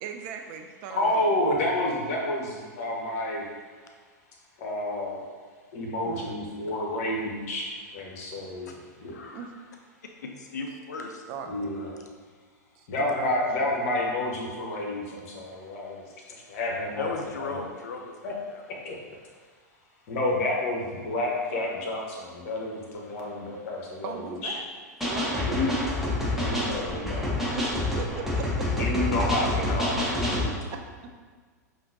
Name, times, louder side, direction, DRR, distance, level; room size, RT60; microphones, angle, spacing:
voice 1, 0.0-1.3 6.0-6.4 9.3-9.5 11.3-11.5 12.8-13.7 24.0-24.7 25.0-25.7 27.5-27.7 28.0-28.8 29.9-30.0 30.4-30.8, right 6 dB, 45° right, 5 dB, 0.4 m, -38 dB
voice 2, 0.9-3.5 4.6-5.2 5.7-8.7 9.0-9.2 11.5-11.9 12.9-16.0 16.3-17.6 18.2-18.3 18.8-18.9 20.1-24.6 25.5-25.7 26.3-27.4 28.7-30.0, left 1 dB, 55° left, -1 dB, 0.9 m, -29 dB
voice 3, 9.1-9.5 10.2-11.2 17.0-18.2 18.5-18.6 25.0-25.1, left 4 dB, 75° left, 3 dB, 0.4 m, -36 dB
sound 1, 25.0-30.5, left 1 dB, ahead, 0.9 m, -27 dB
5.6 x 2.6 x 2.7 m, 1.5 s
figure-of-eight pair, 95°, 9 cm